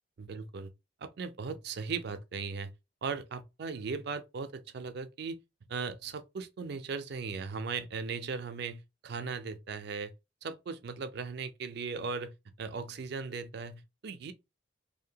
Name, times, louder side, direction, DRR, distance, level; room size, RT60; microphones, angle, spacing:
voice 1, 0.2-0.7 1.0-2.7 3.0-5.4 5.7-10.1 10.4-14.3, right 5 dB, 60° right, 0.4 m, -38 dB
2.7 x 2.1 x 2.7 m
head